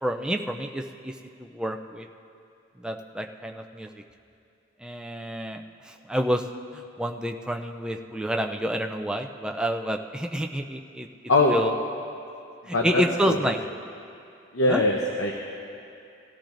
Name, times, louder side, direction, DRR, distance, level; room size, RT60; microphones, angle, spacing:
voice 1, 0.0-2.1 2.8-3.9 4.8-6.5 6.7-11.1 11.5-11.7 12.7-13.6 14.7-14.8, equal, 5° right, 3 dB, 0.4 m, -29 dB
voice 2, 12.7-13.5 14.5-15.3, left 2 dB, 80° left, 0 dB, 0.8 m, -22 dB
18.5 x 13.5 x 2.6 m, 2.6 s
head